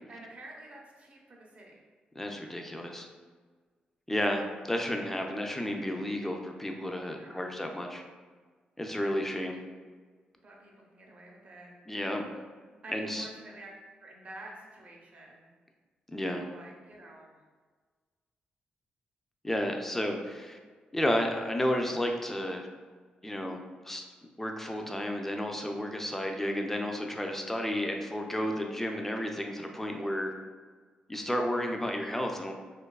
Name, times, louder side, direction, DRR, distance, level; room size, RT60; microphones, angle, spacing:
voice 1, 0.1-1.8 4.2-4.5 7.1-7.6 10.4-11.7 12.8-13.7 14.0-15.5 16.5-17.4 31.6-31.9, right 1 dB, 45° right, -1 dB, 0.5 m, -49 dB
voice 2, 2.2-3.1 4.1-8.0 8.8-9.6 11.9-12.2 12.9-13.3 16.1-16.5 19.4-20.6 20.9-22.7 23.2-24.1 24.4-30.3 31.1-32.5, left 1 dB, 10° left, 3 dB, 0.3 m, -32 dB
2.6 x 2.2 x 2.2 m, 1.5 s
cardioid pair, 80°, 3 cm